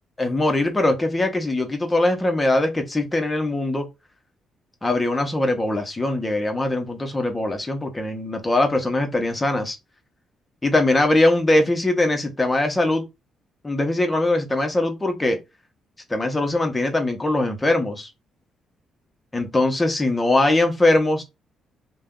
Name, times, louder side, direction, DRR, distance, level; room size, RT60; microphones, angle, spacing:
voice 1, 0.2-3.9 4.8-9.8 10.6-13.0 13.6-15.4 16.1-18.1 19.3-21.2, left 2 dB, 20° left, 0.9 m, -21 dB
2.6 x 2.2 x 3.6 m
cardioid pair, 90°, 0 cm